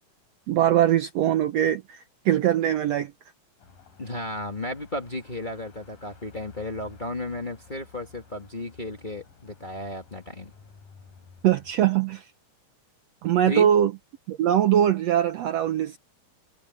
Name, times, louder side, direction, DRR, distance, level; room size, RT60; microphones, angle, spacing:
voice 1, 0.5-3.1 11.4-12.3 13.2-13.9 14.3-16.0, right 11 dB, 70° right, 1.6 m, -22 dB
Car passing by / Traffic noise roadway noise / Engine, 3.6-11.7, left 5 dB, 90° left, 5.9 m, -52 dB
voice 2, 4.0-10.5 13.5-13.7, left 1 dB, 20° left, 1.5 m, -34 dB
omnidirectional pair, 3.7 m